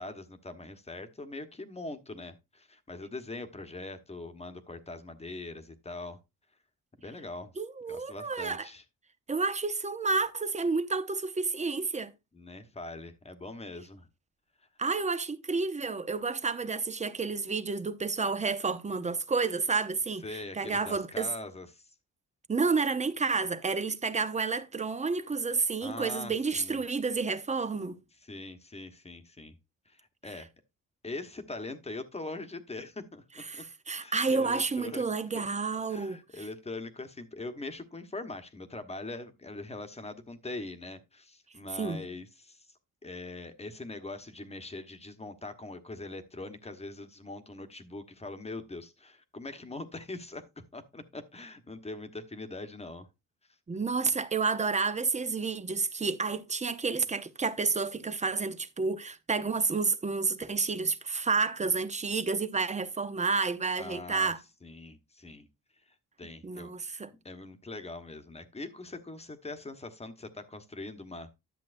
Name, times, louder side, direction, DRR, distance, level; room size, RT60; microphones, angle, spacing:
voice 1, 0.0-6.2 7.0-7.5 7.9-8.8 12.3-14.1 20.2-21.8 25.8-26.8 28.2-29.5 29.9-30.5 31.0-33.2 33.5-33.6 34.0-35.1 35.3-35.4 35.9-42.7 43.0-50.4 50.7-53.1 63.8-64.3 64.6-65.5 66.2-66.7 67.2-71.3, left 2 dB, 20° left, 1.2 m, -42 dB
voice 2, 7.6-8.7 9.3-12.1 14.8-21.3 22.5-28.0 33.5-36.5 41.8-42.0 53.7-64.4 66.4-67.1, right 4 dB, 20° right, 0.7 m, -30 dB
11.0 x 7.3 x 2.6 m
cardioid pair, 110°, 32 cm